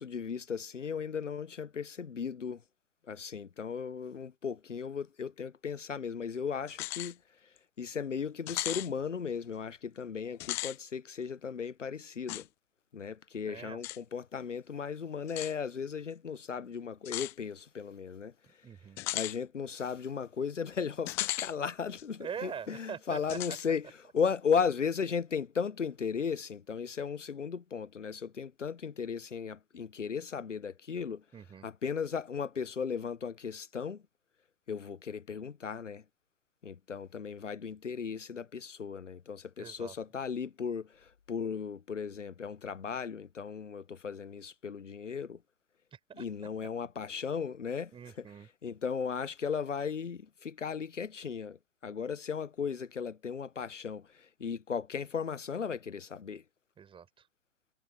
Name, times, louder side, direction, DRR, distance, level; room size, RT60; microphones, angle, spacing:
voice 1, 0.0-2.6 3.1-7.2 7.8-12.5 12.9-18.3 19.1-31.2 31.6-34.0 34.7-36.0 36.6-45.4 46.1-47.9 48.2-48.3 48.6-51.6 51.8-56.4, left 6 dB, 85° left, 0.9 m, -36 dB
sound 1, 6.7-7.1 7.6-7.7 8.5-8.9 10.3-10.8 12.3-12.4 13.8-14.0 15.3-15.5 17.1-17.3 19.0-19.4 21.1-21.5 22.0-22.1 23.3-23.7, left 20 dB, 10° left, 0.3 m, -36 dB
voice 2, 13.5-13.8 18.5-19.0 22.2-23.4 31.3-31.7 39.6-39.9 45.9-46.2 47.9-48.5 56.8-57.2, right 7 dB, 15° right, 5.3 m, -43 dB
figure-of-eight pair, 115°, 36 cm